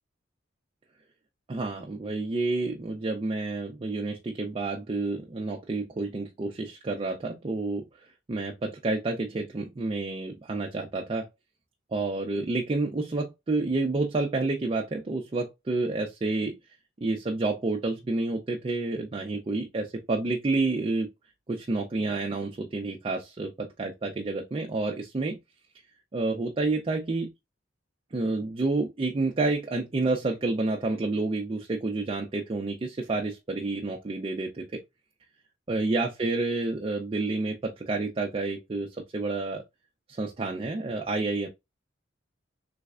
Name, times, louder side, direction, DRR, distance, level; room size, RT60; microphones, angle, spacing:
voice 1, 1.5-7.8 8.3-11.3 11.9-16.6 17.0-21.1 21.5-25.4 26.1-27.3 28.1-34.6 35.7-39.6 40.1-41.5, right 3 dB, 25° right, 0.4 m, -29 dB
3.3 x 3.2 x 2.3 m
head